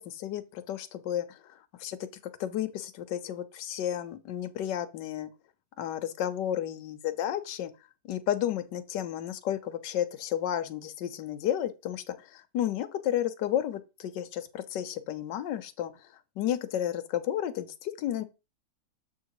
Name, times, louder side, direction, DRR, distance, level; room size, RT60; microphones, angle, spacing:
voice 1, 0.0-2.0 2.4-5.3 5.8-7.7 8.0-16.1 16.4-18.2, left 11 dB, 70° left, 1.4 m, -32 dB
7.8 x 3.7 x 4.7 m
omnidirectional pair, 2.0 m